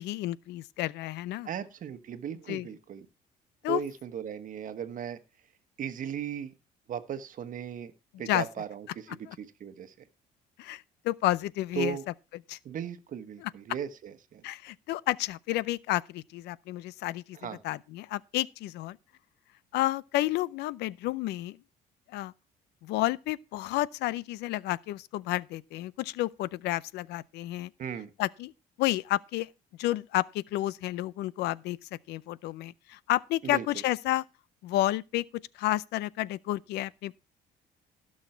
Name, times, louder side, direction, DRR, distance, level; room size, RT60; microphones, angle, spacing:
voice 1, 0.0-1.5 2.5-2.7 3.6-3.8 8.3-8.4 9.3-9.4 10.6-12.0 12.5-12.6 13.4-13.5 14.4-17.4 17.6-19.0 19.7-21.6 22.1-22.3 22.8-27.7 28.2-28.5 28.8-29.5 29.8-31.8 32.1-34.2 34.6-35.2 35.6-37.1, left 16 dB, 80° left, 0.6 m, -31 dB
voice 2, 1.4-3.1 3.7-5.2 5.8-6.5 6.9-7.9 8.2-9.9 11.7-12.0 12.6-14.4 17.3-17.6 27.8-28.1 33.4-33.6, right 8 dB, 50° right, 1.4 m, -37 dB
16.5 x 6.4 x 4.5 m
cardioid pair, 110°, 17 cm